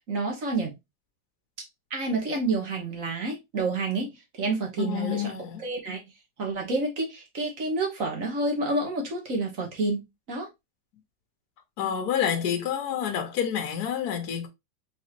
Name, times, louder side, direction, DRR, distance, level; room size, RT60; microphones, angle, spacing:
voice 1, 0.1-0.7 1.9-5.3 5.6-6.0 6.4-10.0 10.3-10.5, right 3 dB, 50° right, 1.5 m, -29 dB
voice 2, 4.8-5.6 11.8-14.5, left 9 dB, 65° left, 1.2 m, -28 dB
4.1 x 3.5 x 2.9 m
omnidirectional pair, 1.9 m